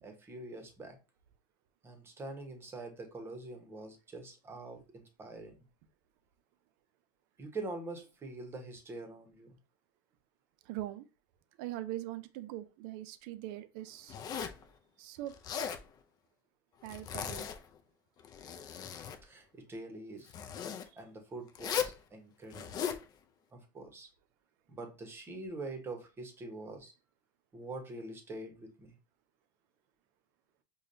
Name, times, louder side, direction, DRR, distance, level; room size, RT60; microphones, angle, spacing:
voice 1, 0.0-1.0 1.8-5.6 7.4-9.5 18.8-18.9 19.2-20.3 21.0-22.8 23.5-24.1 24.7-26.9 27.5-29.0, right 2 dB, 20° right, 0.9 m, -45 dB
voice 2, 10.6-11.1 11.6-14.2 15.0-15.3 16.8-17.5 20.6-21.0, right 14 dB, 55° right, 0.5 m, -42 dB
Zipper (clothing), 14.1-14.6 15.3-15.8 16.9-17.7 18.2-19.2 20.3-20.9 21.6-22.0 22.5-23.0, left 8 dB, 35° left, 0.4 m, -37 dB
4.9 x 2.3 x 2.6 m
supercardioid pair, 115°, 12 cm